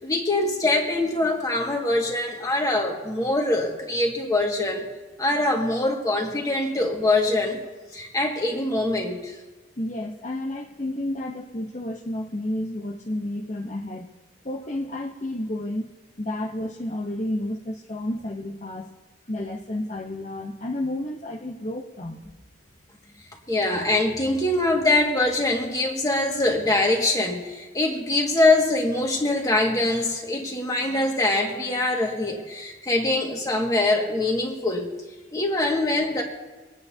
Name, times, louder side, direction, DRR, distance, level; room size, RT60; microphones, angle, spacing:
voice 1, 0.0-4.9 5.2-7.6 7.9-9.4 23.5-34.9 35.3-36.2, left 2 dB, 20° left, 0 dB, 1.9 m, -23 dB
voice 2, 9.8-14.1 14.4-15.9 16.2-18.9 19.3-22.2, left 1 dB, 40° left, 1 dB, 0.8 m, -31 dB
25.0 x 9.5 x 2.8 m, 1.3 s
head